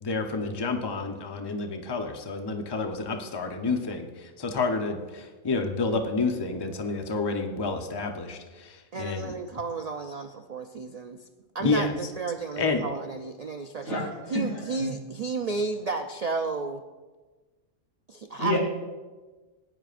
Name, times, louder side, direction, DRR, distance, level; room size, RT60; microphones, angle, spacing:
voice 1, 0.0-9.3 11.6-11.9 12.6-12.9, left 3 dB, 25° left, 4 dB, 0.7 m, -29 dB
voice 2, 8.9-11.3 11.5-13.9 14.3-16.8 18.1-18.6, right 4 dB, 75° right, 5 dB, 0.3 m, -32 dB
voice 3, 13.8-14.5 14.8-14.9 18.4-18.6, left 1 dB, 85° left, -3 dB, 3.3 m, -28 dB
17.5 x 9.8 x 2.5 m, 1.3 s
omnidirectional pair, 1.4 m